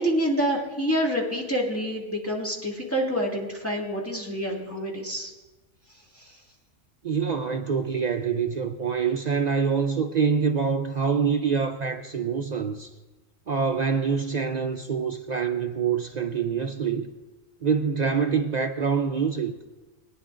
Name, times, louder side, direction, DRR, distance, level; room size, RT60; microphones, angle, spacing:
voice 1, 0.0-5.3, equal, 10° left, -3 dB, 1.9 m, -27 dB
voice 2, 7.0-12.9 13.5-17.1 17.6-19.5, right 6 dB, 65° right, 6 dB, 0.4 m, -25 dB
21.5 x 10.0 x 2.5 m, 1.2 s
omnidirectional pair, 1.3 m